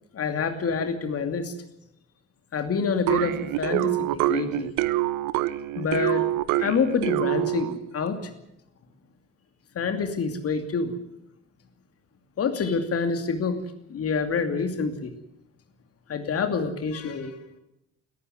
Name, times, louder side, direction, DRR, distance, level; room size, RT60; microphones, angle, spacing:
voice 1, 0.1-1.5 2.5-4.7 5.8-6.2 6.6-8.3 9.7-10.9 12.4-13.6 13.9-15.1 16.1-17.3, left 5 dB, 40° left, 7 dB, 2.6 m, -27 dB
sound 1, 3.1-7.9, right 16 dB, 60° right, 1.0 m, -26 dB
21.5 x 14.0 x 9.5 m, 0.83 s
figure-of-eight pair, 50°, 35 cm